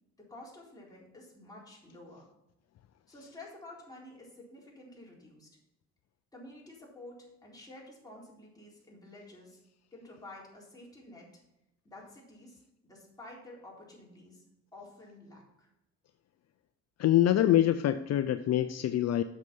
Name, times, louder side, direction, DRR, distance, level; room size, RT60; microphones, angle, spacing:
voice 1, 0.2-2.3 3.1-5.5 6.3-9.6 9.9-11.3 11.8-12.6 12.8-14.4 14.7-15.7, left 2 dB, 10° left, -4 dB, 4.1 m, -50 dB
voice 2, 17.0-19.2, left 12 dB, 60° left, 11 dB, 0.5 m, -25 dB
8.0 x 6.8 x 5.4 m, 0.89 s
cardioid pair, 90°, 30 cm